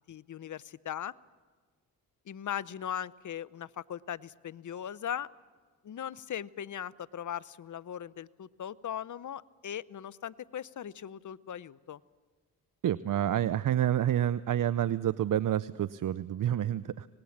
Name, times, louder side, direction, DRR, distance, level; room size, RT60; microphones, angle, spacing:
voice 1, 0.1-1.1 2.3-5.3 5.8-12.0, left 9 dB, 50° left, 19 dB, 0.7 m, -39 dB
voice 2, 12.8-17.1, right 11 dB, 50° right, 17 dB, 0.6 m, -28 dB
25.5 x 19.5 x 7.2 m, 1.4 s
supercardioid pair, 55°, 40 cm